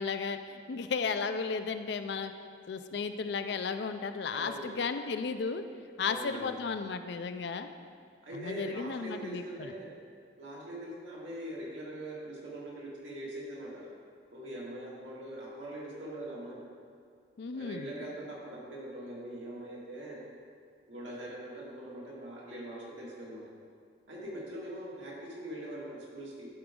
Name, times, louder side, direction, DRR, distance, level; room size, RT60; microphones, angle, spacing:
voice 1, 0.0-2.3 2.7-5.6 6.0-7.7 8.3-9.7 17.4-17.9, left 5 dB, 60° left, 9 dB, 0.4 m, -34 dB
voice 2, 4.3-4.7 6.0-6.5 8.2-9.9 10.4-13.9 14.3-16.6 17.5-20.2 20.9-23.4 24.1-26.5, right 1 dB, 85° right, -5 dB, 2.1 m, -42 dB
11.0 x 4.9 x 3.7 m, 2.1 s
head